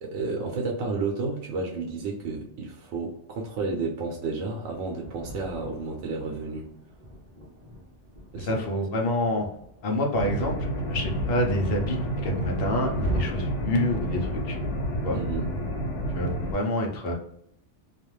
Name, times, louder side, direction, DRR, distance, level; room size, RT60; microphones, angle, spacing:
voice 1, 0.0-6.7 8.3-8.5 15.1-15.5, right 3 dB, 85° right, 0 dB, 0.9 m, -31 dB
Thunder, 4.6-13.2, right 2 dB, 40° right, 0.8 m, -40 dB
voice 2, 8.4-9.5 9.8-14.6 15.0-15.2 16.1-17.1, left 1 dB, 60° left, 2 dB, 0.8 m, -27 dB
sound 1, 10.2-16.5, equal, 85° left, 0.9 m, -30 dB
2.4 x 2.3 x 3.0 m, 0.73 s
omnidirectional pair, 1.2 m